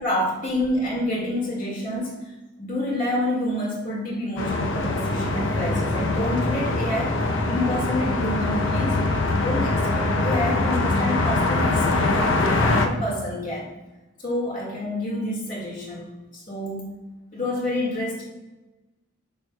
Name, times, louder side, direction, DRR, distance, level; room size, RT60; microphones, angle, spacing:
voice 1, 0.0-2.2 2.6-7.1 7.5-9.0 9.3-13.7 14.2-16.9 17.3-18.2, left 1 dB, 40° left, -3 dB, 1.9 m, -28 dB
sound 1, 4.4-12.9, left 2 dB, 70° left, 0.6 m, -23 dB
6.6 x 6.4 x 2.2 m, 1.1 s
head